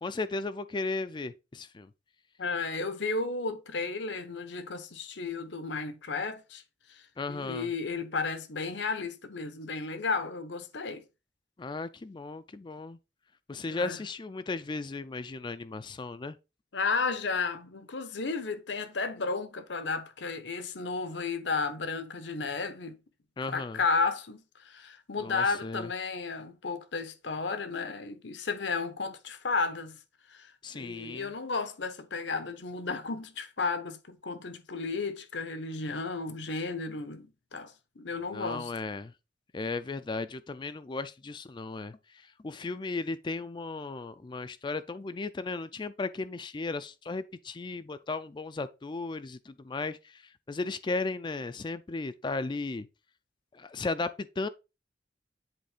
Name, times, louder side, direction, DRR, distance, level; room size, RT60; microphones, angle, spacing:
voice 1, 0.0-1.9 7.2-7.7 11.6-13.0 13.5-16.4 23.4-23.8 25.2-25.9 30.6-31.3 38.3-39.1 39.5-52.9 53.5-54.5, left 3 dB, 25° left, 0.4 m, -35 dB
voice 2, 2.4-6.6 6.9-7.0 7.3-11.0 13.7-14.0 16.7-23.0 23.5-30.0 30.3-38.7, left 4 dB, 75° left, 1.0 m, -33 dB
7.8 x 3.6 x 5.0 m
head